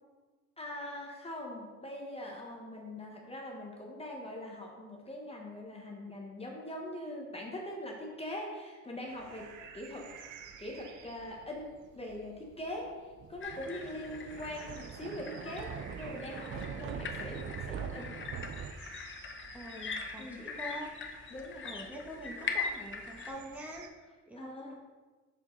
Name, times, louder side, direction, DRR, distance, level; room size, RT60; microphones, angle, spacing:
voice 1, 0.6-10.1 10.6-18.1 20.2-20.5 21.3-21.7 24.4-24.7, left 1 dB, 20° left, -1 dB, 1.0 m, -42 dB
sound 1, 9.1-23.9, right 7 dB, 85° right, 0.7 m, -54 dB
Thunder, 13.2-18.7, right 7 dB, 45° right, 0.4 m, -42 dB
sound 2, 13.4-23.3, left 5 dB, 40° left, 0.8 m, -42 dB
voice 2, 19.5-20.9 21.6-24.7, equal, 5° right, -2 dB, 1.1 m, -45 dB
6.6 x 4.6 x 3.8 m, 1.3 s
cardioid pair, 90°, 30 cm